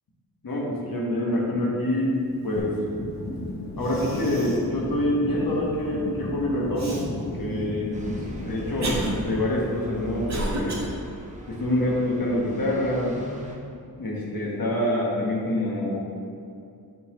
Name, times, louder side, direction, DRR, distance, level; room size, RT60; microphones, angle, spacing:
voice 1, 0.4-2.7 3.7-10.8 11.5-13.2 14.0-16.0, left 1 dB, 65° left, -4 dB, 1.3 m, -26 dB
sound 1, 2.6-9.5, left 1 dB, 25° left, 0.6 m, -35 dB
Cough, 3.4-3.5 3.8-4.7 5.2-5.3 6.8-7.0 7.8-10.9, right 1 dB, 45° right, 0.9 m, -32 dB
sound 2, 7.9-13.6, equal, 20° right, 0.7 m, -41 dB
9.1 x 4.0 x 2.9 m, 2.5 s
wide cardioid pair, 110°, 37 cm